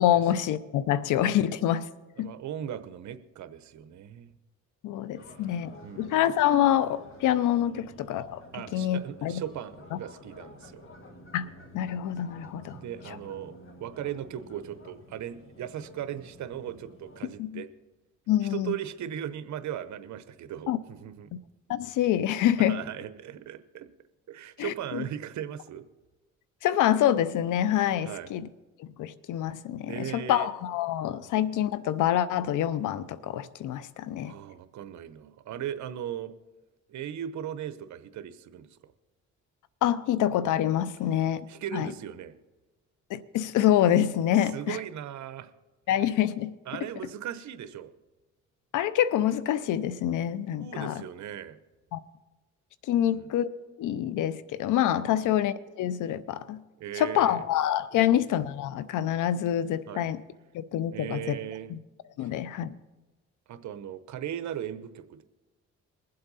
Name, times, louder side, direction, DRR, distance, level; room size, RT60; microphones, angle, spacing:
voice 1, 0.0-1.9 2.2-2.3 4.8-8.4 8.7-9.4 11.3-12.8 13.1-13.2 17.4-17.6 18.3-18.7 20.7-20.8 21.7-22.8 24.6-25.0 26.6-28.5 28.8-34.3 39.8-41.5 41.7-41.9 43.1-44.8 45.9-46.6 48.7-51.0 51.9-52.0 52.8-53.5 53.8-56.6 57.0-60.2 60.5-61.4 61.7-61.8 62.2-62.8, left 11 dB, 85° left, 0.7 m, -26 dB
voice 2, 2.2-4.4 5.8-6.2 8.5-10.8 12.7-17.7 18.5-21.3 22.6-23.9 24.3-25.8 28.0-28.3 29.9-30.5 31.2-31.3 34.2-36.3 36.9-38.9 41.5-42.3 44.5-45.5 46.7-47.9 50.6-51.6 53.0-53.3 55.1-55.3 56.8-57.5 57.9-58.2 59.9-60.1 60.9-61.7 62.2-62.3 63.5-65.2, right 10 dB, 70° right, 1.0 m, -38 dB
sound 1, 5.1-17.4, left 1 dB, 45° left, 1.9 m, -51 dB
22.0 x 7.8 x 4.1 m
cardioid pair, 90°, 30 cm